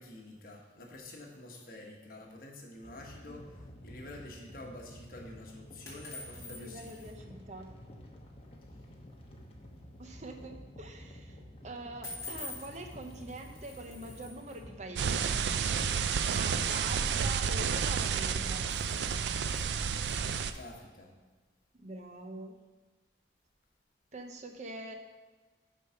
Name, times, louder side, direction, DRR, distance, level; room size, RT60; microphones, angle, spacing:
voice 1, 0.0-7.1 20.5-21.1, left 1 dB, 55° left, 0 dB, 1.3 m, -48 dB
sound 1, 2.8-16.1, equal, 35° left, 0.9 m, -50 dB
sound 2, 5.9-7.1 12.0-14.6 18.5-20.8, left 3 dB, 20° left, 2.2 m, -48 dB
voice 2, 6.4-7.7 10.0-11.4 11.6-15.5 16.3-18.6 21.7-22.5 24.1-24.9, right 2 dB, 40° right, 4 dB, 0.7 m, -44 dB
sound 3, 15.0-20.5, right 6 dB, 75° right, 0.4 m, -30 dB
6.4 x 5.4 x 5.7 m, 1.3 s
head